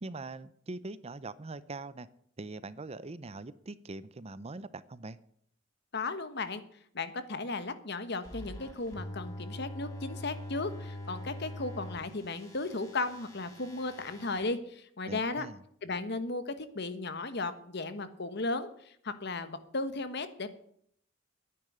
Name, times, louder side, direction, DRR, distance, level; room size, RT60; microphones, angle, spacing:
voice 1, 0.0-2.1 2.4-5.2 15.1-15.6, right 3 dB, 30° right, 17 dB, 0.6 m, -42 dB
voice 2, 5.9-6.6 6.9-15.5 15.8-20.5, left 3 dB, 60° left, 11 dB, 1.3 m, -35 dB
sound 1, 8.2-14.4, left 1 dB, 15° left, 7.0 m, -44 dB
10.5 x 9.7 x 10.0 m, 0.68 s
head